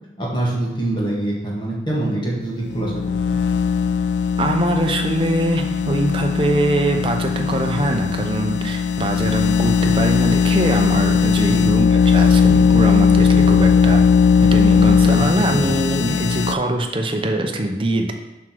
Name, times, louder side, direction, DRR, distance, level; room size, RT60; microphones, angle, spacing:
voice 1, 0.2-2.9 3.2-3.4 11.5-11.8 15.1-15.3 15.6-15.7, right 1 dB, 25° left, -4 dB, 1.8 m, -24 dB
sound 1, 2.7-16.5, left 6 dB, 90° left, 0.3 m, -18 dB
voice 2, 4.4-14.1 14.4-18.1, right 1 dB, 30° right, 3 dB, 0.7 m, -22 dB
6.1 x 5.7 x 4.6 m, 1.1 s
head